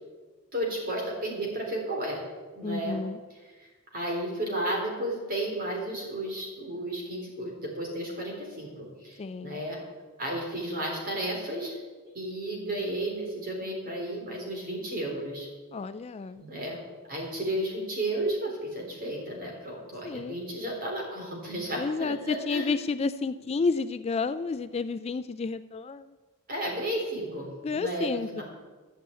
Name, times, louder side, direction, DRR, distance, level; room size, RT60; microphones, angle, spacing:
voice 1, 0.5-2.2 2.5-3.0 3.6-8.7 9.0-9.8 10.2-11.8 12.0-15.5 16.4-16.8 17.1-22.7 26.5-27.5 27.7-28.4, right 1 dB, 45° right, -1 dB, 4.0 m, -33 dB
voice 2, 2.6-3.2 9.2-9.6 15.7-16.4 20.0-20.4 21.7-26.2 27.6-28.4, left 4 dB, 30° left, 12 dB, 0.3 m, -31 dB
12.0 x 7.0 x 8.5 m, 1.3 s
head